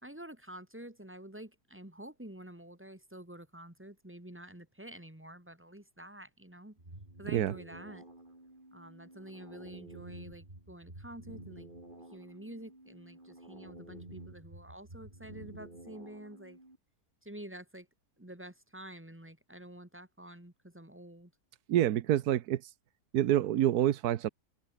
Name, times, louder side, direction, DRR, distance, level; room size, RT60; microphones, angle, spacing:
voice 1, 0.0-6.8 7.2-8.1 8.7-11.7 12.1-16.6 17.2-17.9 18.2-21.3, right 1 dB, 10° right, 2.6 m, -48 dB
sound 1, 6.8-16.8, right 1 dB, 30° right, 5.4 m, -50 dB
voice 2, 21.7-22.7 23.1-24.3, right 12 dB, 90° right, 1.3 m, -27 dB
omnidirectional pair, 1.6 m